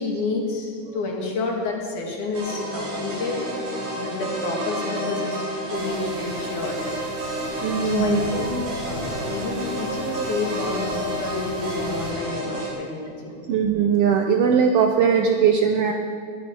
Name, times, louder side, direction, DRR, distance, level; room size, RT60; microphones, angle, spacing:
voice 1, 0.0-3.4 3.9-6.8 7.3-7.5 7.8-8.6 8.9-13.4, left 3 dB, 70° left, 0 dB, 3.5 m, -29 dB
sound 1, 2.3-12.7, right 1 dB, 65° right, 4.7 m, -30 dB
sound 2, 5.7-12.1, right 1 dB, 45° right, 2.5 m, -39 dB
voice 2, 7.6-8.3 13.5-15.9, right 7 dB, 85° right, 3 dB, 1.3 m, -19 dB
21.5 x 11.5 x 4.8 m, 2.2 s
omnidirectional pair, 3.7 m